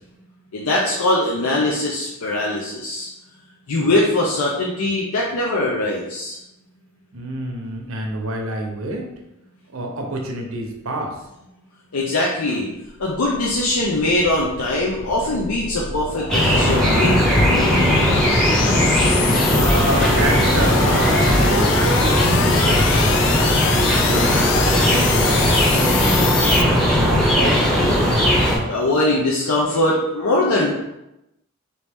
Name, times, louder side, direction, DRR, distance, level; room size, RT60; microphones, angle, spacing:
voice 1, 0.5-3.1 3.7-6.4 11.9-12.7 13.0-17.7 28.7-30.7, left 1 dB, 90° left, -4 dB, 0.6 m, -21 dB
voice 2, 7.1-9.1 9.7-11.2 19.5-23.1 23.6-26.6 27.0-28.2, right 1 dB, 70° right, 2 dB, 0.7 m, -28 dB
sound 1, 12.8-26.6, left 7 dB, 55° left, 0.3 m, -26 dB
sound 2, 16.3-28.6, equal, 5° left, 0.7 m, -17 dB
4.6 x 2.7 x 3.5 m, 0.90 s
head